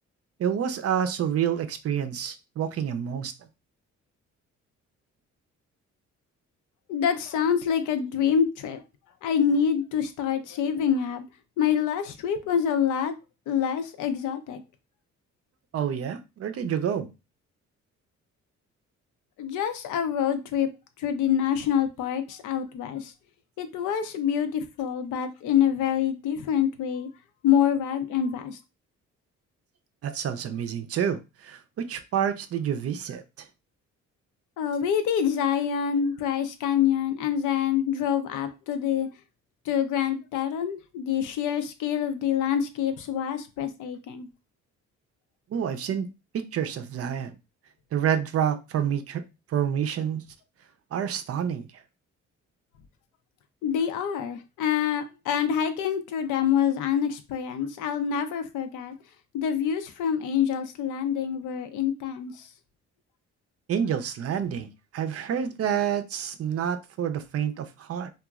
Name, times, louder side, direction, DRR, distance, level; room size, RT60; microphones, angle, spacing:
voice 1, 0.4-3.3 15.7-17.1 30.0-33.5 45.5-46.1 46.3-47.4 47.9-49.2 49.5-50.2 50.9-51.8 63.7-68.1, right 8 dB, 50° right, 0.5 m, -28 dB
voice 2, 6.9-8.8 9.2-11.2 11.6-13.1 13.5-14.6 19.4-20.7 21.0-23.1 23.6-27.1 27.4-28.6 34.6-39.1 39.7-44.3 53.6-58.9 59.3-62.4, left 8 dB, 80° left, 0.5 m, -26 dB
2.9 x 2.3 x 2.3 m
cardioid pair, 90°, 30 cm